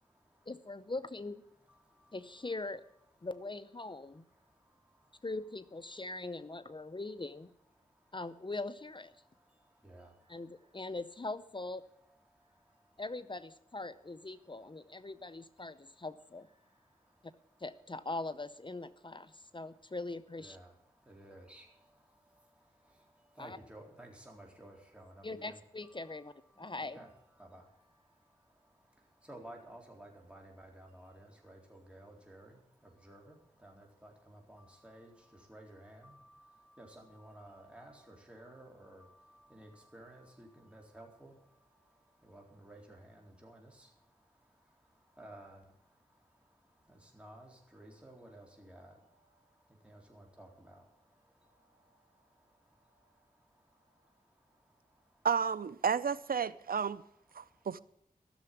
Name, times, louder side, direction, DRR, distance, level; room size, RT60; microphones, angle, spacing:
voice 1, 0.5-1.5 2.1-2.8 3.2-4.3 5.2-7.5 8.1-9.1 10.3-11.8 13.0-16.5 17.6-20.6 23.4-23.6 25.2-27.1, left 2 dB, 35° left, 0.7 m, -41 dB
voice 2, 20.4-20.7 21.1-21.6 23.4-25.9 26.6-27.1 27.4-27.6 29.3-32.6 33.0-33.4 33.6-35.1 35.5-41.3 42.3-43.7 45.2-45.6 47.1-48.9 49.8-50.8, right 1 dB, 10° right, 4.1 m, -54 dB
voice 3, 55.2-57.0 57.3-57.8, right 6 dB, 85° right, 0.5 m, -32 dB
14.5 x 6.9 x 9.3 m
wide cardioid pair, 55°, 15 cm